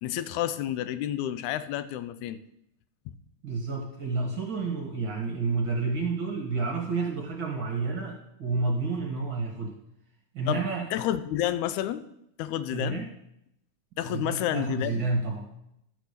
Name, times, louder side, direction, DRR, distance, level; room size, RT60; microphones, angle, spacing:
voice 1, 0.0-2.4 10.5-10.6 10.9-12.0 12.4-13.1 14.0-15.1, left 12 dB, 80° left, 13 dB, 1.9 m, -30 dB
voice 2, 3.4-9.8 10.3-10.9 12.7-13.1 14.1-15.5, right 3 dB, 50° right, 0 dB, 1.5 m, -30 dB
12.0 x 5.1 x 6.5 m, 0.79 s
omnidirectional pair, 3.6 m